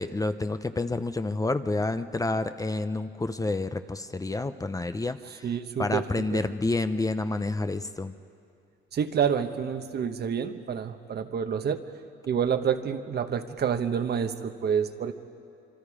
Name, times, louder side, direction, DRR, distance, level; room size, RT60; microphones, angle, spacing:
voice 1, 0.0-5.4 5.8-8.1, left 2 dB, 15° left, 10 dB, 0.6 m, -29 dB
voice 2, 5.4-6.4 8.9-11.9 12.3-15.1, right 7 dB, 55° right, 8 dB, 1.1 m, -28 dB
26.0 x 24.5 x 4.9 m, 2.5 s
cardioid pair, 90°, 20 cm